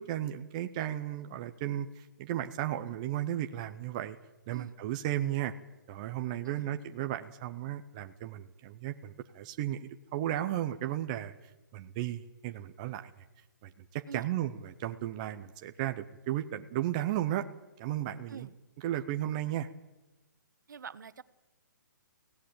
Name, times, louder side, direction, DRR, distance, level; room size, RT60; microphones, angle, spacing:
voice 1, 0.0-4.2 4.5-5.5 5.9-11.3 11.7-13.1 13.6-17.5 17.8-18.5 18.8-19.7, right 12 dB, 20° right, 7 dB, 0.6 m, -34 dB
voice 2, 20.7-21.2, right 6 dB, 65° right, 13 dB, 1.3 m, -46 dB
23.0 x 16.5 x 8.7 m, 1.1 s
hypercardioid pair, 170°, 11 cm